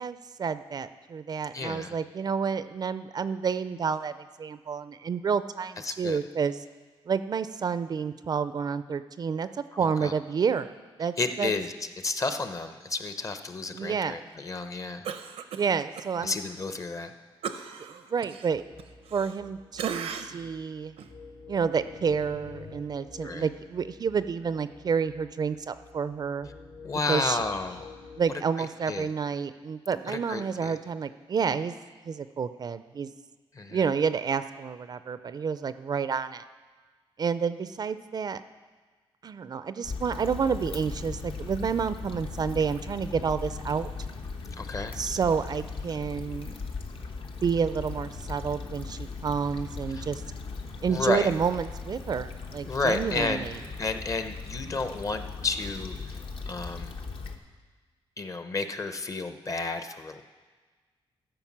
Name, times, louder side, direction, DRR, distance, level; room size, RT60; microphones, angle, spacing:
voice 1, 0.0-6.6 7.1-10.7 11.0-11.5 13.7-14.2 15.5-16.3 17.9-18.6 19.1-20.9 21.5-26.5 27.1-27.4 28.2-31.8 32.0-33.1 33.7-36.4 37.2-38.4 39.2-43.9 45.0-46.6 47.4-50.2 50.8-53.6, right 6 dB, 45° right, 13 dB, 0.4 m, -29 dB
voice 2, 1.5-2.0 5.8-6.2 9.7-10.1 11.2-11.7 12.0-15.1 16.2-17.1 23.2-23.5 26.8-27.9 28.6-29.1 30.1-30.8 33.5-33.8 44.6-45.0 49.9-50.1 50.9-51.3 52.7-53.5 53.8-56.2 56.5-56.9 58.2-60.2, left 3 dB, 35° left, 8 dB, 0.7 m, -31 dB
Cough, 15.0-16.1 16.5-16.6 17.4-19.5 19.8-20.5 21.0-21.1, right 7 dB, 85° right, 0.6 m, -37 dB
sound 1, 18.5-28.4, left 4 dB, 80° left, 3.4 m, -48 dB
Stream / Traffic noise roadway noise / Trickle dribble, 39.8-57.4, left 4 dB, 60° left, 1.0 m, -38 dB
13.5 x 5.3 x 7.3 m, 1.4 s
cardioid pair, 110°, 10 cm